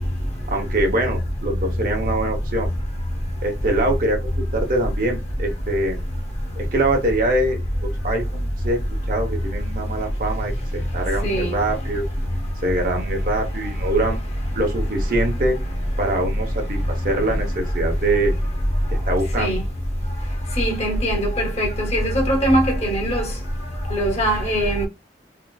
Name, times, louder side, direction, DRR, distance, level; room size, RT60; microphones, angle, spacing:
voice 1, 0.5-2.7 3.4-6.0 6.6-8.8 9.1-12.1 12.6-14.2 14.5-15.6 16.0-18.3 19.1-19.6, right 1 dB, 50° right, 0.9 m, -24 dB
voice 2, 20.6-23.3 23.9-24.9, equal, 35° left, 0.8 m, -21 dB
3.8 x 2.4 x 2.3 m
head